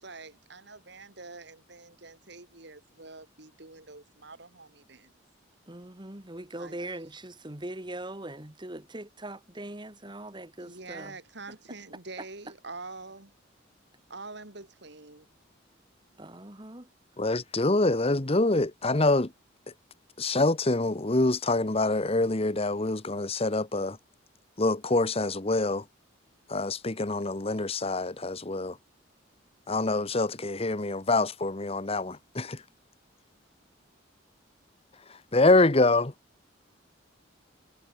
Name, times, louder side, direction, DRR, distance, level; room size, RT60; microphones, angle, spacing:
voice 1, 0.0-5.1 6.6-6.7 10.6-13.3 14.1-15.3, right 3 dB, 60° right, 3.3 m, -45 dB
voice 2, 5.7-11.2 16.2-16.9, right 1 dB, 25° right, 2.2 m, -41 dB
voice 3, 17.2-19.3 20.2-24.0 24.6-25.8 26.5-28.8 29.7-32.5 35.1-36.1, left 2 dB, 30° left, 1.1 m, -25 dB
head